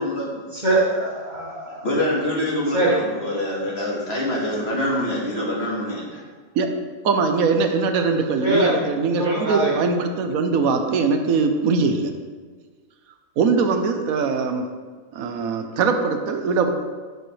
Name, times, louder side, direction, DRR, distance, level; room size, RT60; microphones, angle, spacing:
voice 1, 0.6-1.9 2.7-3.3 8.4-8.7 9.2-9.7, right 1 dB, 30° right, -6 dB, 2.3 m, -22 dB
voice 2, 1.8-6.2, left 1 dB, 50° left, -4 dB, 1.9 m, -25 dB
voice 3, 7.0-12.1 13.4-14.6 15.1-16.7, right 4 dB, 85° right, 6 dB, 1.2 m, -21 dB
10.5 x 6.8 x 3.2 m, 1.5 s
omnidirectional pair, 1.4 m